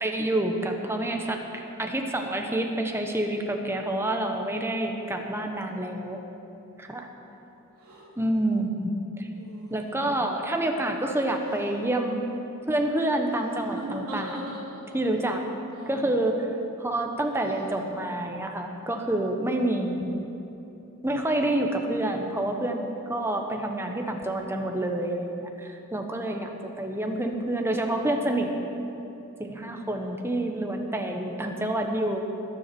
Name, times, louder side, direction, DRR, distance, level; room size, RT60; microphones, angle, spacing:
voice 1, 0.0-6.2 6.9-7.0 8.2-9.3 9.7-12.2 12.7-14.5 14.9-15.4 15.9-16.5 16.8-20.2 21.0-26.5 26.8-28.5 29.4-32.3, right 1 dB, 10° right, 3 dB, 1.1 m, -28 dB
sound 1, 7.8-8.0 9.3-10.2 11.3-11.9 13.3-15.0 15.7-16.2 17.4-17.8, right 1 dB, 80° right, 3.5 m, -41 dB
20.5 x 7.2 x 6.0 m, 2.9 s
head